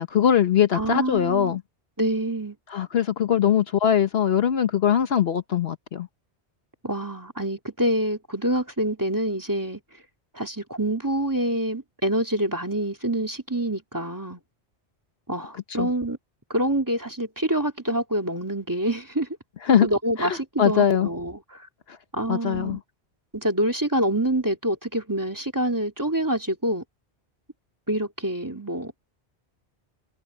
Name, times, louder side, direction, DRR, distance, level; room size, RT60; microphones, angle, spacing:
voice 1, 0.0-1.6 2.7-6.1 15.8-15.9 19.6-19.9 20.2-21.1 22.3-22.8, left 9 dB, 65° left, 1.1 m, -21 dB
voice 2, 0.7-1.6 2.0-2.6 6.8-9.8 10.3-14.4 15.3-16.2 16.5-19.3 19.8-21.7 22.1-22.8 23.3-26.8 27.9-29.0, right 1 dB, 15° right, 2.7 m, -26 dB
omnidirectional pair, 1.1 m